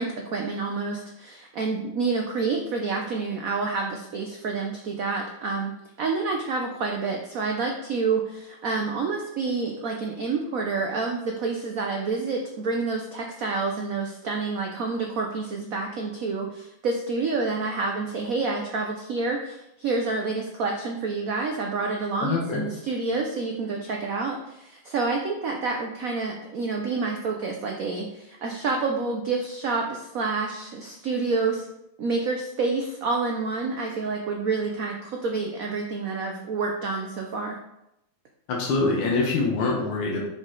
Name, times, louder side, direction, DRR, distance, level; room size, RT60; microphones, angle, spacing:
voice 1, 0.0-5.7 6.0-31.7 32.0-37.6, right 4 dB, 80° right, 1 dB, 0.7 m, -28 dB
voice 2, 22.2-22.6 38.5-40.2, left 3 dB, 80° left, -2 dB, 2.0 m, -24 dB
6.3 x 5.0 x 3.8 m, 0.84 s
omnidirectional pair, 2.3 m